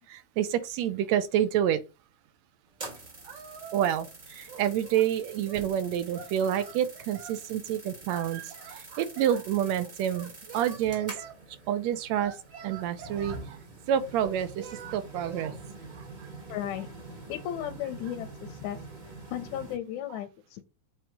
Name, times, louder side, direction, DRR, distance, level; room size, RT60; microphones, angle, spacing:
voice 1, 0.1-1.8 3.7-11.1 11.7-12.4 12.6-13.6 13.9-15.6 15.9-16.0, right 10 dB, 75° right, 1.9 m, -28 dB
sound 1, 2.7-19.8, right 2 dB, 40° right, 0.6 m, -46 dB
Singing, 3.2-4.2 4.5-5.7 6.1-7.4 8.1-9.4 10.1-11.4 12.2-13.5 14.2-15.5, right 6 dB, 60° right, 2.6 m, -45 dB
voice 2, 16.5-16.9 17.3-18.8 19.3-20.6, left 11 dB, 85° left, 2.1 m, -35 dB
7.7 x 3.2 x 5.3 m
omnidirectional pair, 3.4 m